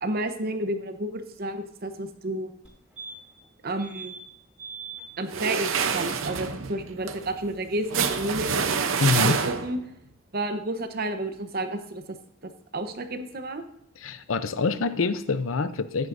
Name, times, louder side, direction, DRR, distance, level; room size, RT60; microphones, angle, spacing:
voice 1, 0.0-2.5 3.6-4.1 5.2-9.8 10.3-12.2 12.4-13.6, right 1 dB, 50° right, 8 dB, 0.9 m, -31 dB
sound 1, 2.6-2.7 3.0-3.4 3.8-4.2 4.6-5.0 7.4-7.5 7.7-7.8, right 5 dB, 5° right, 2.9 m, -41 dB
sound 2, 5.3-9.9, right 6 dB, 90° right, 0.7 m, -27 dB
voice 2, 9.0-9.4 14.0-16.1, left 4 dB, 90° left, 12 dB, 0.6 m, -26 dB
14.0 x 9.7 x 2.6 m, 0.71 s
head